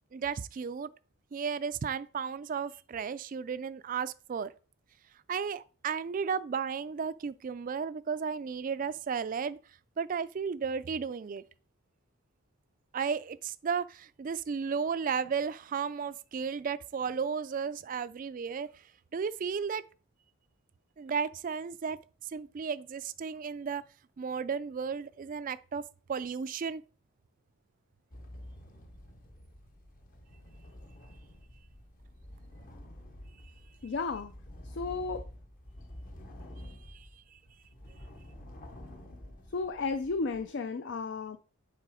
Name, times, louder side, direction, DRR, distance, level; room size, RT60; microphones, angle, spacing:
voice 1, 0.1-0.9 1.3-4.5 5.3-9.6 10.0-11.4 12.9-18.7 19.1-19.8 21.0-22.0 22.3-23.8 24.2-25.8 26.1-26.8 36.9-37.1, right 6 dB, 40° right, 0.3 m, -34 dB
sound 1, 28.1-40.5, left 1 dB, 40° left, 0.9 m, -49 dB
voice 2, 33.8-34.3 34.6-35.2 39.5-41.4, left 4 dB, 55° left, 0.4 m, -33 dB
7.4 x 3.9 x 4.9 m
head